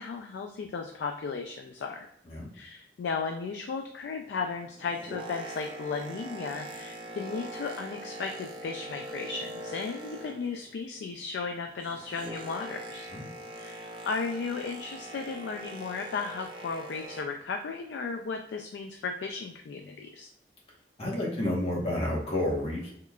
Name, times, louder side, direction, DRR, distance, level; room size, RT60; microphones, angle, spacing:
voice 1, 0.0-2.1 2.5-13.1 13.6-20.3, left 4 dB, 75° left, 3 dB, 0.3 m, -35 dB
Boat Water vehicle, 4.7-10.7 11.0-17.5 18.1-18.2, right 1 dB, 30° right, 0.4 m, -42 dB
voice 2, 21.0-22.9, left 1 dB, 35° left, -4 dB, 1.0 m, -30 dB
3.7 x 3.1 x 2.3 m, 0.74 s
head